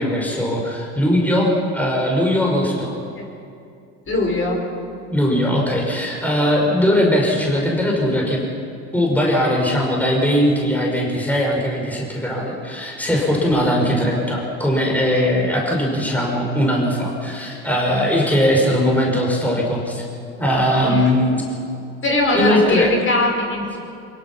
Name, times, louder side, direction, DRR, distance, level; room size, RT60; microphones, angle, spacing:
voice 1, 0.0-3.0 5.1-8.5 8.9-20.0 20.4-21.4 22.3-22.9, equal, 5° left, -2 dB, 5.3 m, -19 dB
voice 2, 4.1-4.6 20.8-21.1 22.0-23.8, left 1 dB, 30° left, -1 dB, 5.6 m, -20 dB
24.0 x 21.5 x 5.9 m, 2.5 s
supercardioid pair, 90°, 39 cm